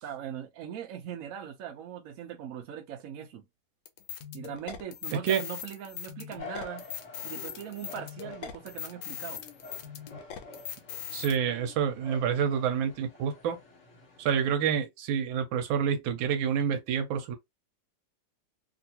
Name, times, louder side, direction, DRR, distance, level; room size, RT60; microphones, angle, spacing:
voice 1, 0.0-3.4 4.3-6.8 7.2-9.4, right 9 dB, 70° right, 0.8 m, -40 dB
sound 1, 3.9-11.4, left 8 dB, 70° left, 1.2 m, -40 dB
voice 2, 5.1-5.4 11.1-13.6 14.2-17.4, right 8 dB, 85° right, 1.4 m, -28 dB
sound 2, 6.4-14.6, left 3 dB, 45° left, 1.2 m, -48 dB
2.9 x 2.7 x 2.8 m
omnidirectional pair, 2.1 m